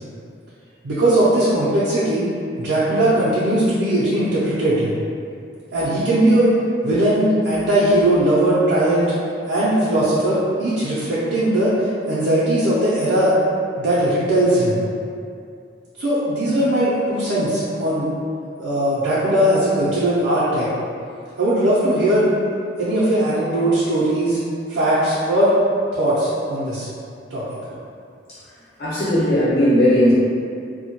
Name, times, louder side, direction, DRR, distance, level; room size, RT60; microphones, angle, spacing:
voice 1, 0.8-2.3 2.6-4.9 5.7-9.1 9.5-13.3 13.8-14.8 16.0-18.1 18.6-20.7 21.4-22.3 22.8-24.4 24.7-25.6 25.9-26.9 27.3-27.4, right 1 dB, 90° right, -10 dB, 0.5 m, -19 dB
voice 2, 28.8-30.1, equal, 65° left, -9 dB, 0.8 m, -16 dB
2.1 x 2.1 x 2.8 m, 2.4 s
head